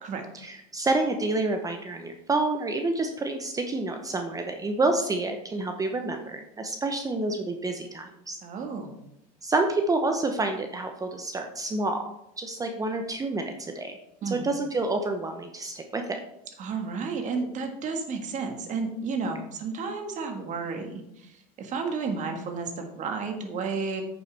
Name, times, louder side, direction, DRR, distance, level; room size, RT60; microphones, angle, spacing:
voice 1, 0.4-8.4 9.4-12.0 12.4-14.0 14.3-16.2, right 2 dB, 20° right, 5 dB, 0.8 m, -28 dB
voice 2, 8.4-9.0 14.2-14.5 16.6-24.0, right 4 dB, 40° right, 4 dB, 1.6 m, -32 dB
9.0 x 6.9 x 3.4 m, 0.84 s
supercardioid pair, 105°, 18 cm